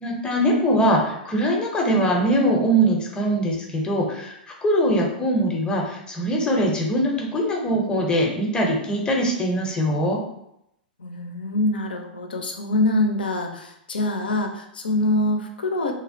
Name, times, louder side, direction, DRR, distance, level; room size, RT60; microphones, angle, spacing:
voice 1, 0.0-10.2, right 1 dB, 15° left, -1 dB, 0.6 m, -22 dB
voice 2, 11.0-15.9, left 2 dB, 85° left, 3 dB, 0.4 m, -24 dB
2.5 x 2.1 x 2.6 m, 0.79 s
hypercardioid pair, 110°, 5 cm